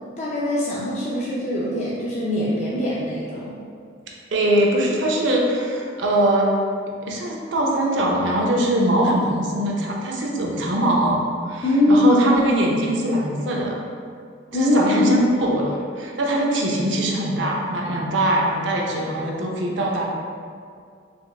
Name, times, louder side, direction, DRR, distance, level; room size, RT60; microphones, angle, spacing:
voice 1, 0.2-3.6 11.6-12.4 14.5-15.3, left 1 dB, 35° left, -7 dB, 0.4 m, -21 dB
voice 2, 4.3-6.5 7.0-13.8 14.5-15.7 16.0-20.0, right 1 dB, 70° right, -2 dB, 0.5 m, -22 dB
4.8 x 2.4 x 2.3 m, 2.2 s
head